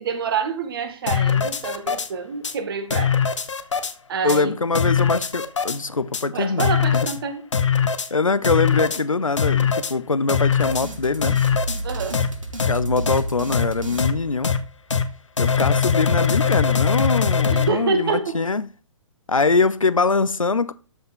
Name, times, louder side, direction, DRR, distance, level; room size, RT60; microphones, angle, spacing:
voice 1, 0.0-3.1 4.1-4.5 6.3-7.5 11.8-12.2 17.5-18.4, right 5 dB, 45° right, 1.9 m, -27 dB
sound 1, 1.1-2.1 2.4-2.5 2.9-3.9 4.3-4.4 4.8-5.8 6.1-6.2 6.6-7.2 7.5-8.1 8.4-9.0 9.4-9.9 10.3-10.9 11.2-11.8 12.1-12.3 12.6-12.7 13.1-13.2 13.5-13.7 14.0-14.1 14.4-14.6 14.9-15.0 15.4-17.7, left 6 dB, 65° left, 1.2 m, -21 dB
voice 2, 4.2-7.1 8.1-11.4 12.6-14.5 15.4-18.7 19.3-20.7, left 4 dB, 85° left, 0.7 m, -23 dB
sound 2, 10.6-14.9, right 1 dB, 80° right, 2.5 m, -32 dB
13.0 x 5.4 x 3.8 m
figure-of-eight pair, 125°, 17 cm